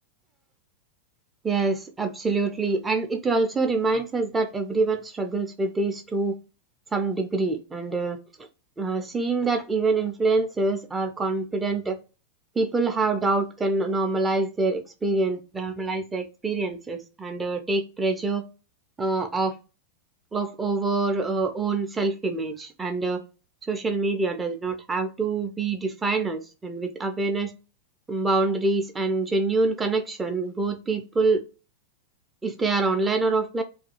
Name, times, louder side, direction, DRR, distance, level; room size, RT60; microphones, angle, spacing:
voice 1, 1.4-6.3 6.9-8.2 8.8-12.0 12.6-18.4 19.0-19.5 20.3-23.2 23.7-27.5 28.1-31.4 32.4-33.6, right 3 dB, 15° right, 5 dB, 0.4 m, -25 dB
2.4 x 2.2 x 2.8 m, 0.32 s
figure-of-eight pair, 90°, 0 cm